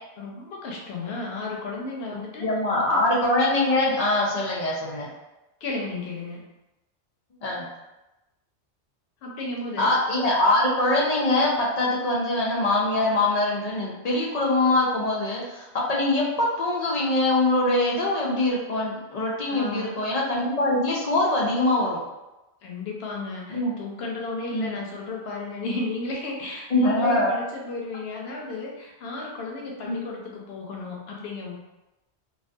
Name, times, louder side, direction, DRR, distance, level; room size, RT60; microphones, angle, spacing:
voice 1, 0.2-2.5 2.7-3.0 3.9-4.0 4.9-5.1 5.6-6.5 9.2-9.9 19.5-20.0 22.6-31.6, left 2 dB, 70° left, -1 dB, 0.8 m, -34 dB
voice 2, 2.1-5.1 7.4-7.7 9.8-22.0 23.5-23.7 24.5-24.7 26.7-27.3 29.8-30.0, left 2 dB, 55° left, -4 dB, 0.4 m, -23 dB
2.3 x 2.3 x 2.5 m, 1.0 s
omnidirectional pair, 1.1 m